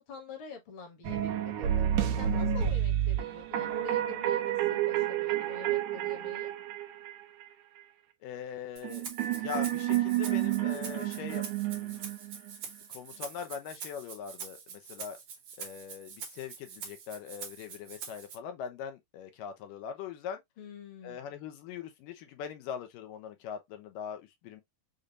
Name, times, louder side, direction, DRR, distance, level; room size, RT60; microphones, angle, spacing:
voice 1, 0.0-6.5 20.6-21.3, left 4 dB, 50° left, 1.7 m, -47 dB
sound 1, 1.0-7.4 8.8-12.5, right 11 dB, 75° right, 1.8 m, -30 dB
voice 2, 2.2-2.5 8.2-12.0 12.9-15.2 15.6-20.4 21.0-24.6, left 8 dB, 75° left, 2.2 m, -42 dB
Rattle (instrument), 8.8-18.4, right 6 dB, 60° right, 1.6 m, -45 dB
6.6 x 2.8 x 2.4 m
omnidirectional pair, 4.3 m